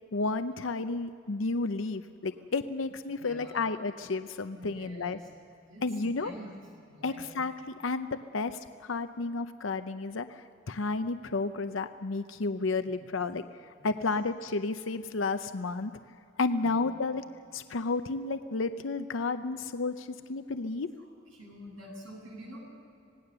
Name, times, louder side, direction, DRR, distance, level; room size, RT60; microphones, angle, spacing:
voice 1, 0.1-5.2 5.8-6.3 7.0-7.5 7.8-15.9 16.4-17.2 17.5-20.9, left 3 dB, 80° left, 10 dB, 0.7 m, -32 dB
voice 2, 3.2-3.7 4.5-5.2 5.7-6.5 6.9-7.3 13.8-14.0 16.6-16.9 21.0-22.6, equal, 90° right, -1 dB, 7.8 m, -47 dB
26.5 x 18.5 x 6.8 m, 2.6 s
head